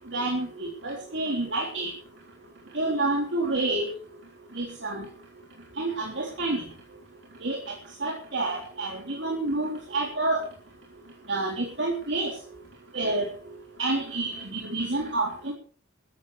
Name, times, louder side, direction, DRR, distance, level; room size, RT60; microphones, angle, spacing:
voice 1, 0.1-1.9 2.7-3.9 4.5-5.1 5.8-6.6 7.4-7.7 8.0-10.4 11.3-12.4 12.9-13.3 13.8-15.5, right 2 dB, 70° right, -2 dB, 3.6 m, -28 dB
15.0 x 13.0 x 4.9 m, 0.42 s
head